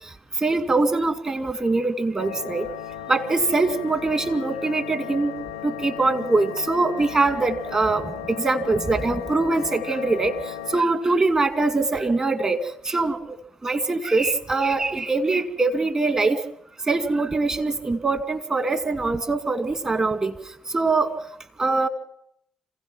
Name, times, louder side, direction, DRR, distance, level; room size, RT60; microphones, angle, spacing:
voice 1, 0.4-2.7 3.1-5.3 5.6-10.3 10.7-12.6 12.8-13.2 13.6-16.4 16.9-20.3 20.7-21.1 21.6-21.9, right 3 dB, 30° right, 8 dB, 2.2 m, -23 dB
sound 1, 2.2-10.8, left 10 dB, 90° left, 0.7 m, -36 dB
27.0 x 16.0 x 6.0 m, 0.75 s
hypercardioid pair, 45°, 2 cm